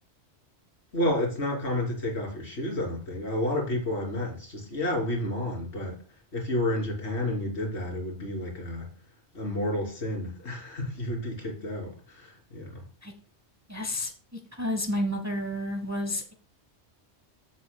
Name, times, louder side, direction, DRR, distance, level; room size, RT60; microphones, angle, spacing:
voice 1, 0.9-6.0 6.3-8.9 9.3-12.9, left 1 dB, 85° left, 3.5 m, -30 dB
voice 2, 13.7-16.3, left 1 dB, 15° right, 1.1 m, -31 dB
14.0 x 7.8 x 2.2 m
omnidirectional pair, 1.1 m